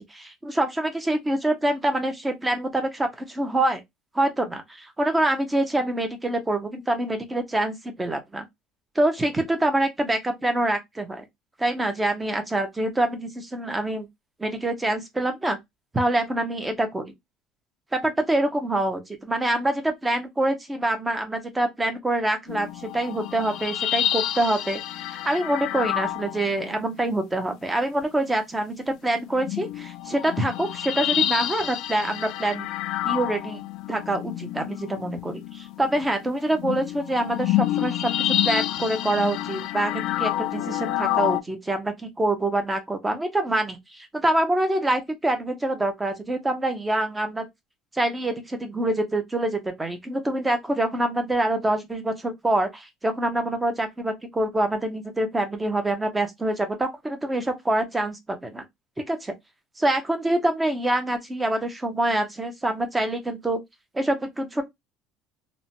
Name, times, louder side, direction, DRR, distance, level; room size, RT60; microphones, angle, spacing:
voice 1, 0.0-3.8 4.1-8.4 9.0-11.2 11.6-14.1 14.4-15.6 15.9-17.1 17.9-24.8 25.1-32.7 33.0-33.6 33.9-47.5 47.9-58.6 59.1-59.3 59.8-63.6 63.9-64.6, right 1 dB, 10° right, 0.6 m, -25 dB
sound 1, 22.5-27.0 28.0-28.1 29.3-41.4, left 12 dB, 55° left, 0.3 m, -28 dB
2.9 x 2.1 x 2.6 m
cardioid pair, 140°, 0 cm